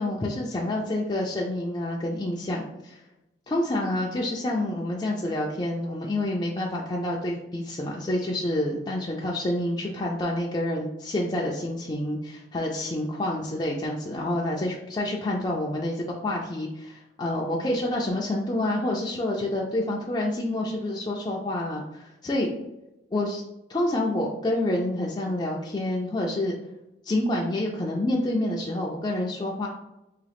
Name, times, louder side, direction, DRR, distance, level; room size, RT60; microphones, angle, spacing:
voice 1, 0.0-3.0 3.5-22.5 23.1-23.4 23.7-26.6 27.1-29.7, left 1 dB, 25° left, -3 dB, 0.4 m, -28 dB
3.7 x 2.9 x 3.4 m, 0.94 s
head